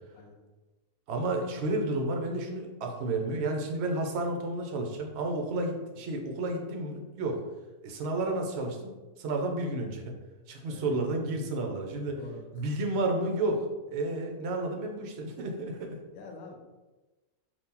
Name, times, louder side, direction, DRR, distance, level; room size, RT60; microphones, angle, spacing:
voice 1, 1.1-7.4 7.8-8.9 9.2-10.1 10.5-12.2 12.5-16.0, right 2 dB, 60° right, 3 dB, 0.7 m, -31 dB
voice 2, 10.7-11.3 12.1-13.0 16.1-16.6, left 3 dB, 80° left, 2 dB, 1.0 m, -47 dB
2.8 x 2.5 x 3.6 m, 1.2 s
omnidirectional pair, 1.5 m